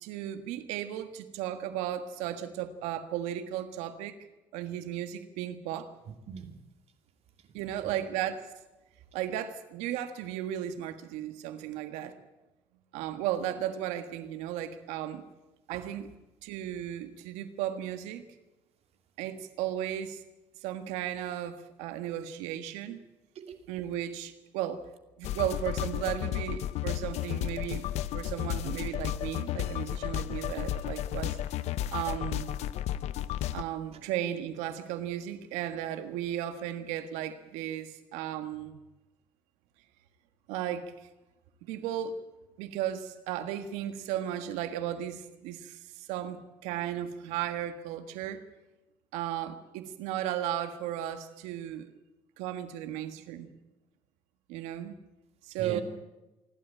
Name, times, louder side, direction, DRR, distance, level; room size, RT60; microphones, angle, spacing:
voice 1, 0.0-4.2 4.5-5.9 7.5-8.4 9.1-12.2 12.9-15.2 15.7-16.1 16.4-18.2 19.2-20.2 20.6-23.0 23.7-24.8 25.2-27.9 28.1-31.4 31.9-32.6 33.5-38.8 40.5-41.1 41.6-42.2 42.6-48.4 49.1-51.9 52.4-53.5 54.5-54.9 55.4-55.8, right 11 dB, 85° right, 10 dB, 1.6 m, -35 dB
voice 2, 6.1-6.5 7.4-8.0 15.7-15.9 23.3-23.7 33.9-34.0 55.6-55.8, right 8 dB, 65° right, 7 dB, 2.5 m, -43 dB
sound 1, 25.2-33.6, left 12 dB, 70° left, 0.8 m, -33 dB
27.0 x 12.5 x 8.9 m, 1.0 s
hypercardioid pair, 60°, 12 cm